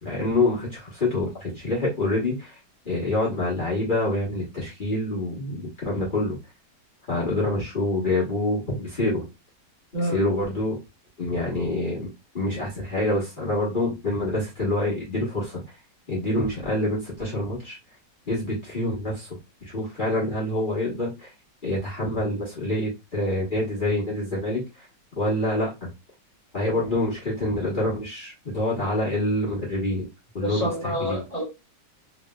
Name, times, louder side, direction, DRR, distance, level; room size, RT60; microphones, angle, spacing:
voice 1, 0.0-2.6 2.8-6.4 7.1-9.2 10.0-10.7 11.2-12.1 12.3-15.6 16.1-17.8 18.3-19.3 19.6-21.3 21.6-24.6 25.2-25.9 26.5-30.1 30.3-31.2, left 1 dB, 30° left, -6 dB, 1.1 m, -26 dB
voice 2, 30.4-31.4, equal, 30° right, -7 dB, 0.8 m, -28 dB
3.1 x 2.7 x 2.2 m, 0.24 s
omnidirectional pair, 1.9 m